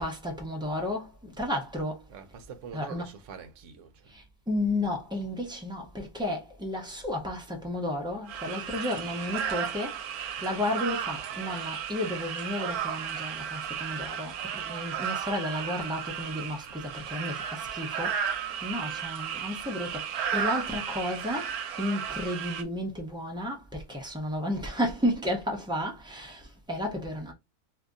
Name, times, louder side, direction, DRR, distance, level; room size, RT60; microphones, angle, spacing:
voice 1, 0.0-2.0 2.7-3.1 4.1-10.0 10.4-18.2 18.6-27.3, left 1 dB, 5° right, 0.5 m, -32 dB
voice 2, 2.1-4.1, right 6 dB, 60° right, 0.9 m, -44 dB
sound 1, 8.3-22.6, right 8 dB, 85° right, 1.1 m, -34 dB
2.7 x 2.6 x 3.6 m
omnidirectional pair, 1.6 m